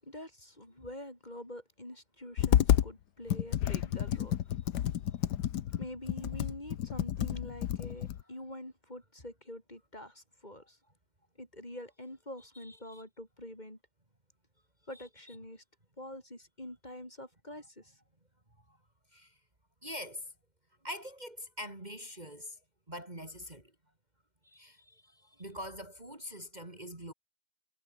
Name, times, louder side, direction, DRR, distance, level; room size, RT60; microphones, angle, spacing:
voice 1, 0.0-4.4 5.8-10.8 11.4-13.8 14.9-15.6 16.0-18.0, left 1 dB, 25° left, 6.0 m, -46 dB
Computer keyboard, 2.4-2.9 3.3-8.2, left 11 dB, 85° left, 1.5 m, -30 dB
voice 2, 12.6-13.0 15.0-15.4 18.7-18.8 19.1-19.3 19.8-20.3 20.8-22.6 22.9-23.7 24.4-27.1, equal, 25° right, 3.5 m, -44 dB
omnidirectional pair, 1.7 m